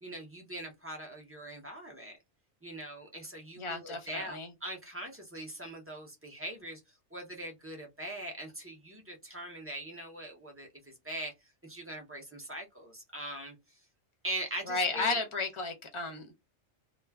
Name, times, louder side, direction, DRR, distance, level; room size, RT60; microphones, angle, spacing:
voice 1, 0.0-2.2 2.6-6.8 7.1-11.3 11.6-13.6 14.2-15.2, right 1 dB, 20° right, 0.3 m, -41 dB
voice 2, 3.6-4.5 14.7-16.3, left 3 dB, 35° left, 0.6 m, -33 dB
2.2 x 2.1 x 3.3 m
omnidirectional pair, 1.2 m